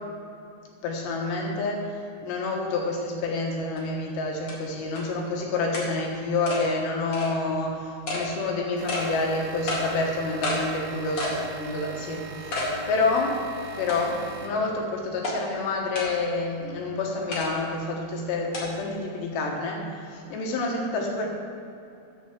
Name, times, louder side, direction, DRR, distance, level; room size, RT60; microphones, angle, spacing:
voice 1, 0.8-11.3 11.6-12.6 12.9-13.4 13.7-21.3, left 3 dB, 75° left, 0 dB, 3.3 m, -28 dB
sound 1, 3.8-3.9 4.5-4.6 5.0-5.1 5.7-5.9 6.5-6.6 7.1-7.3 8.1-8.2 8.9-9.1 9.7-9.8 10.4-10.6 11.2-11.4 11.8-11.9 12.5-12.7 13.2-13.3 13.9-14.3 15.2-15.3 15.9-16.1 17.3-17.5 18.5-18.6, left 2 dB, 45° left, 2.0 m, -30 dB
sound 2, 8.8-15.0, right 3 dB, 70° right, 3.3 m, -40 dB
8.3 x 7.5 x 7.2 m, 2.6 s
omnidirectional pair, 5.2 m